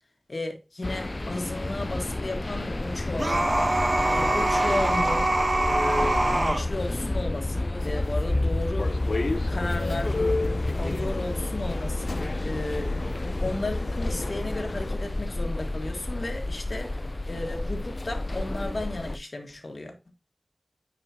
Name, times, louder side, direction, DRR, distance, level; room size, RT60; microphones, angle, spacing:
voice 1, 0.3-5.3 5.6-9.0 9.5-10.2 10.7-12.1 12.4-13.0 13.4-17.0 17.3-19.9, left 2 dB, 65° left, 1.8 m, -34 dB
sound 1, 0.8-19.2, left 2 dB, 40° left, 0.3 m, -30 dB
sound 2, 3.2-6.6, right 2 dB, 45° right, 1.1 m, -24 dB
sound 3, 8.8-14.9, left 3 dB, 85° left, 0.9 m, -33 dB
9.7 x 4.9 x 2.9 m
wide cardioid pair, 50°, 0 cm